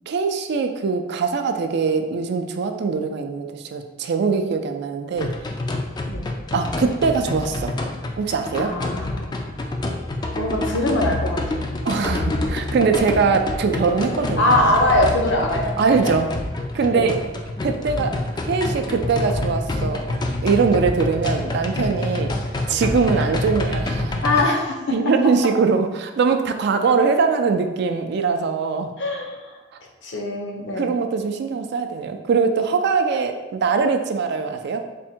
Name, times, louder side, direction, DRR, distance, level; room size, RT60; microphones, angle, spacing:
voice 1, 0.1-5.3 6.5-7.7 8.2-8.7 11.9-14.8 15.8-16.3 16.7-17.2 17.6-18.2 18.5-22.3 22.7-24.2 24.9-28.9 30.8-34.9, right 5 dB, 60° right, 7 dB, 0.3 m, -22 dB
sound 1, 5.2-24.4, left 2 dB, 20° left, 0.3 m, -27 dB
voice 2, 8.6-9.3 10.4-11.7 14.4-15.8 16.0-16.3 16.9-17.1 23.1-23.3 24.2-24.8 29.0-29.6 30.0-30.9, left 1 dB, 70° left, 1 dB, 0.7 m, -22 dB
3.5 x 2.1 x 4.3 m, 1.2 s
head